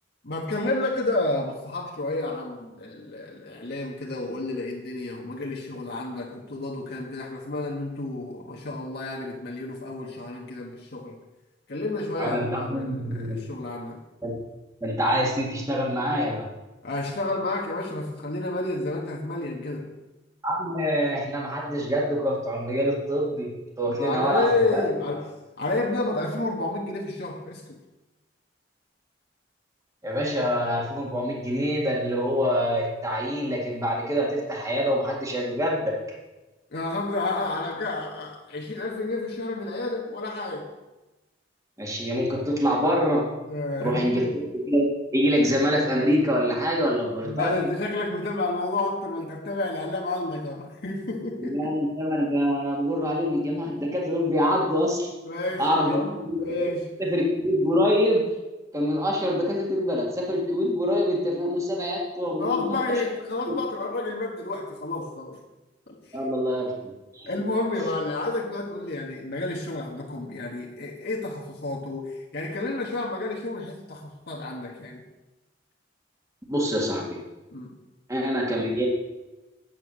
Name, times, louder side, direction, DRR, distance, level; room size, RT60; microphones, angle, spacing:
voice 1, 0.2-11.2 11.7-14.0 16.8-19.9 24.0-27.8 36.7-40.7 43.5-44.3 47.2-51.7 55.2-57.0 62.2-65.4 65.9-66.2 67.3-75.0 77.5-77.8, left 2 dB, 60° left, -3 dB, 1.4 m, -30 dB
voice 2, 12.2-13.4 14.2-14.3 14.8-16.5 20.4-23.5 23.8-24.9 30.0-35.9 41.8-43.3 43.8-44.9 45.1-47.7 51.4-55.1 55.6-56.5 57.0-58.2 58.7-62.9 63.5-63.6 66.1-66.7 67.1-67.3 76.5-77.2 78.1-78.9, equal, 20° right, -2 dB, 1.8 m, -25 dB
9.1 x 8.6 x 6.2 m, 1.1 s
head